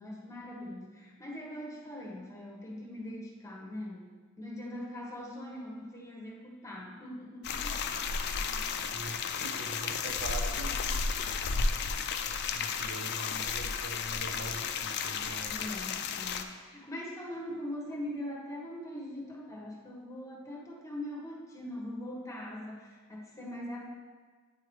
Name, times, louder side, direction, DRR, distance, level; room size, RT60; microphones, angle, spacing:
voice 1, 0.0-8.0 8.4-8.7 15.5-23.8, left 1 dB, 15° left, -3 dB, 1.1 m, -42 dB
sound 1, 7.4-16.4, left 5 dB, 55° left, 0.4 m, -33 dB
voice 2, 8.8-11.0 12.2-15.7, right 3 dB, 65° right, 3 dB, 0.7 m, -43 dB
9.3 x 4.7 x 3.1 m, 1.5 s
head